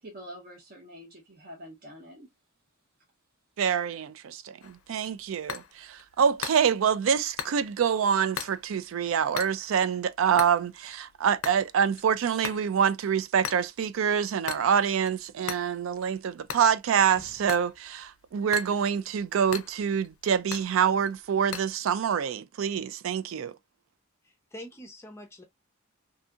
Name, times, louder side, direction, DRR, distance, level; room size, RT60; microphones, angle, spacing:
voice 1, 0.0-2.3, equal, 45° right, 0.7 m, -46 dB
voice 2, 3.6-23.5, right 7 dB, 65° right, 0.3 m, -26 dB
sound 1, 4.6-21.7, left 8 dB, 85° left, 0.5 m, -42 dB
voice 3, 24.2-25.4, equal, 15° left, 0.5 m, -45 dB
2.7 x 2.6 x 2.3 m
head